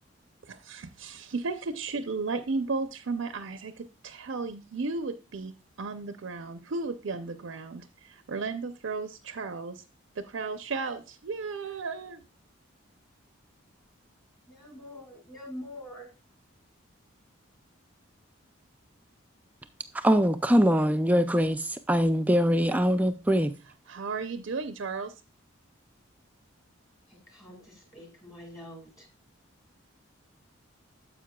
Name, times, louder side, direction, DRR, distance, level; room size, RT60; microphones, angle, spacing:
voice 1, 0.5-5.5 5.8-9.8 10.2-12.2 23.9-25.1, right 4 dB, 70° right, 0.5 m, -34 dB
voice 2, 14.5-16.1 27.1-29.1, left 1 dB, 20° left, 1.9 m, -45 dB
voice 3, 19.9-23.6, equal, 5° right, 0.3 m, -23 dB
9.5 x 7.6 x 2.2 m
head